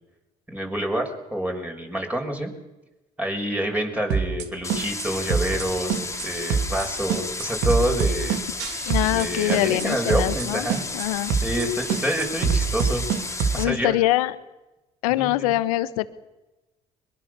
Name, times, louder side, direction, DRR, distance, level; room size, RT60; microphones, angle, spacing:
voice 1, 0.5-2.5 3.2-8.4 9.0-10.8 11.4-13.1 13.5-13.9 15.0-15.6, equal, 10° right, 2 dB, 6.6 m, -27 dB
sound 1, 4.1-4.4 4.7-5.0 5.3-5.6 5.9-6.2 6.5-6.8 7.1-9.2 9.5-9.8 10.1-10.4 10.7-11.0 11.3-11.6 11.9-13.6, right 6 dB, 70° right, 2.7 m, -24 dB
sound 2, 4.6-13.7, left 3 dB, 15° left, 3.0 m, -33 dB
voice 2, 8.9-10.7 10.9-11.3 13.6-14.4 15.0-16.1, left 16 dB, 85° left, 14 dB, 1.1 m, -23 dB
23.0 x 22.5 x 6.9 m, 1.0 s
hypercardioid pair, 60°, 18 cm